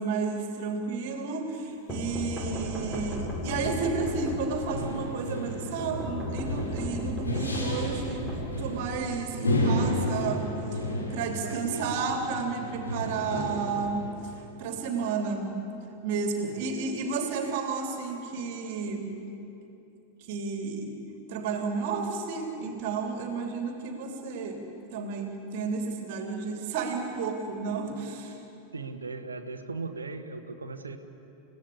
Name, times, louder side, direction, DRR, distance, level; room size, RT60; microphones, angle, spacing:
voice 1, 0.0-8.2 8.6-15.6 16.0-19.2 20.2-21.0 21.3-24.6 24.9-28.4, right 4 dB, 50° right, 3 dB, 3.2 m, -32 dB
sound 1, 1.9-4.8 5.8-9.1, left 1 dB, 15° left, 6.4 m, -35 dB
sound 2, 2.6-14.1, left 1 dB, 75° left, 5.3 m, -33 dB
voice 2, 11.4-12.0 16.4-16.6 28.7-31.0, right 3 dB, 75° right, 8 dB, 1.6 m, -38 dB
30.0 x 17.0 x 8.5 m, 3.0 s
figure-of-eight pair, 90°, 0 cm